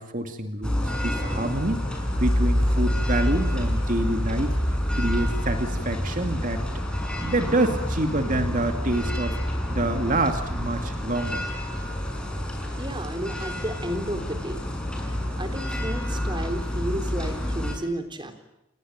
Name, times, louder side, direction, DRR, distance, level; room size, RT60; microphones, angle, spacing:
voice 1, 0.0-4.5 4.9-6.6 7.2-11.4, right 1 dB, 40° right, 6 dB, 2.4 m, -27 dB
sound 1, 0.6-17.7, equal, 5° left, 5.6 m, -27 dB
voice 2, 12.8-14.6 15.4-18.4, right 1 dB, 25° right, 8 dB, 3.7 m, -32 dB
29.5 x 20.5 x 8.9 m, 0.88 s
head